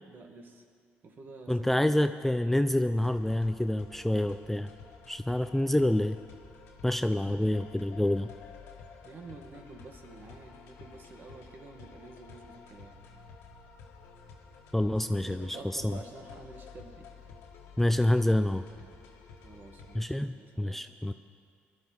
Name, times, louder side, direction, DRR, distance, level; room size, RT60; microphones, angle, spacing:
voice 1, 0.1-0.6 1.0-1.8 9.0-12.9 15.0-17.1 19.4-20.8, right 3 dB, 50° right, 4 dB, 1.6 m, -49 dB
voice 2, 1.5-4.7 5.1-6.2 6.8-8.3 14.7-16.0 17.8-18.6 19.9-21.1, left 1 dB, 5° left, 9 dB, 0.4 m, -27 dB
sound 1, 3.0-20.0, left 5 dB, 90° left, 1.6 m, -51 dB
20.5 x 12.0 x 3.9 m, 2.1 s
cardioid pair, 90°, 4 cm